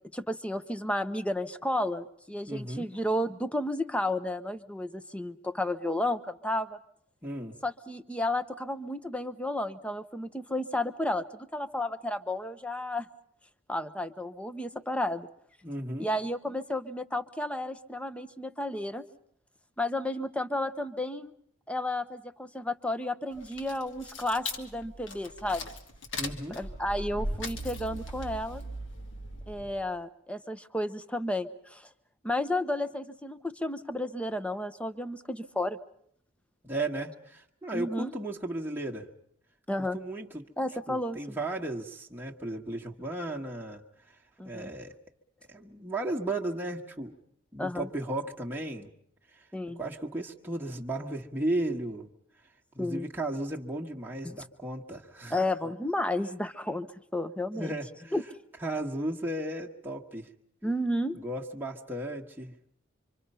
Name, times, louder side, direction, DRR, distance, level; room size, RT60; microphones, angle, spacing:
voice 1, 0.1-6.8 7.6-11.3 11.5-13.1 13.7-15.3 16.0-19.0 19.8-21.3 21.7-25.7 26.5-28.6 29.5-31.9 32.2-35.8 37.7-38.1 39.7-40.0 40.6-41.4 44.4-44.7 47.6-47.9 49.5-49.8 52.8-53.1 55.3-57.7 58.1-58.2 60.6-61.2, left 1 dB, 5° left, 12 dB, 0.9 m, -32 dB
voice 2, 2.5-2.9 7.2-7.6 15.6-16.1 26.2-26.6 36.6-39.1 39.9-40.4 40.9-43.8 44.4-44.9 45.5-47.1 47.5-48.9 49.3-49.4 49.8-52.1 52.7-55.4 57.5-58.1 58.6-60.3 61.1-62.5, right 1 dB, 10° right, -2 dB, 1.5 m, -35 dB
sound 1, 23.3-29.9, left 1 dB, 65° left, 2.3 m, -38 dB
26.0 x 25.5 x 5.6 m, 0.68 s
head